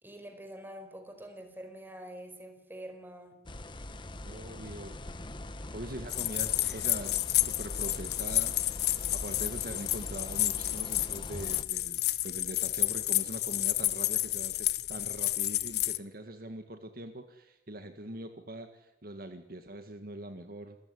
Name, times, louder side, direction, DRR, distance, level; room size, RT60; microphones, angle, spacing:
voice 1, 0.0-3.4, right 1 dB, 10° right, 6 dB, 4.9 m, -46 dB
sound 1, 3.5-11.6, left 1 dB, 30° left, 1.2 m, -42 dB
voice 2, 4.2-5.0 5.7-20.8, right 1 dB, 60° right, 7 dB, 1.9 m, -43 dB
sound 2, 6.1-16.0, left 15 dB, 65° left, 0.9 m, -30 dB
27.5 x 15.0 x 9.8 m, 0.89 s
head